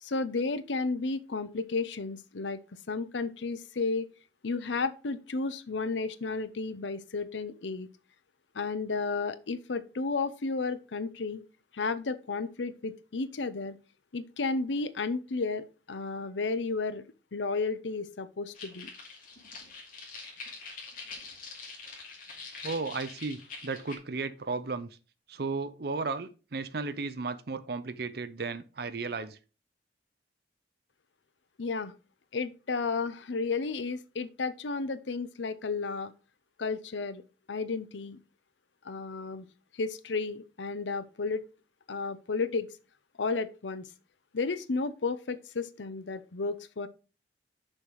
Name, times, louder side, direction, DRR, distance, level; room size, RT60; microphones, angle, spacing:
voice 1, 0.0-4.1 4.4-7.9 8.5-11.4 11.7-13.8 14.1-17.0 17.3-18.9 31.6-31.9 32.3-36.1 36.6-37.2 37.5-38.2 38.8-39.5 39.7-41.4 41.9-42.7 43.2-43.9 44.3-46.9, left 4 dB, 85° left, 0.7 m, -32 dB
sound 1, 18.5-24.0, left 4 dB, 50° left, 2.5 m, -44 dB
voice 2, 22.6-25.0 25.3-29.4, right 4 dB, 60° right, 0.6 m, -34 dB
6.5 x 5.8 x 4.7 m
head